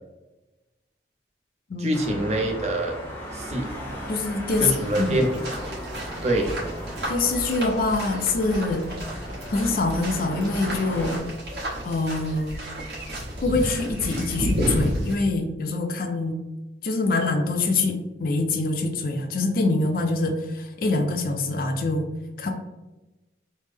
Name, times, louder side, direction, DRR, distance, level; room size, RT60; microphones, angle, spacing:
voice 1, 1.8-3.0 3.3-3.7 4.6-5.6 6.2-6.6, right 1 dB, 40° right, 2 dB, 0.5 m, -25 dB
Traffic noise roadway noise, 1.9-11.2, equal, 10° left, 0.6 m, -37 dB
voice 2, 4.1-4.7 5.0-5.2 7.1-8.9 9.5-11.2 11.8-12.6 13.4-16.4 16.8-22.1 22.4-22.5, left 3 dB, 50° left, 5 dB, 0.4 m, -25 dB
sound 1, 4.5-15.1, equal, 65° right, 1.2 m, -32 dB
3.2 x 2.0 x 3.2 m, 1.0 s
head